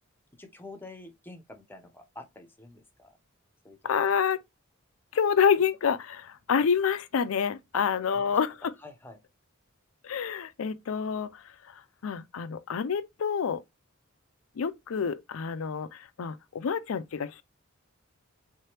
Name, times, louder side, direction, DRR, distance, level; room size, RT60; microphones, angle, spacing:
voice 1, 0.3-3.2 3.6-3.8 7.7-7.8 8.1-8.4 8.8-9.2, left 2 dB, 10° left, 0.7 m, -47 dB
voice 2, 3.8-4.4 5.1-8.7 10.0-11.4 12.0-13.6 14.6-17.4, left 7 dB, 85° left, 0.4 m, -28 dB
3.7 x 3.3 x 2.8 m
head